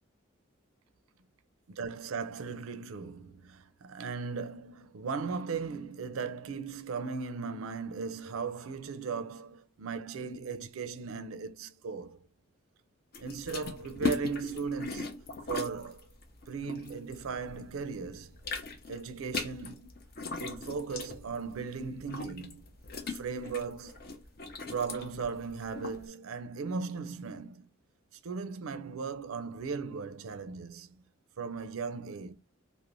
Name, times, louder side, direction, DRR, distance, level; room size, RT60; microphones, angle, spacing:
voice 1, 1.7-12.2 13.2-16.1 16.5-18.4 18.9-19.9 20.4-22.6 23.1-24.1 24.7-27.6 28.1-31.0 31.4-32.3, right 5 dB, 80° right, 0.4 m, -37 dB
sound 1, 13.1-17.7 18.0-26.0, left 4 dB, 45° left, 0.5 m, -39 dB
2.5 x 2.1 x 2.9 m
head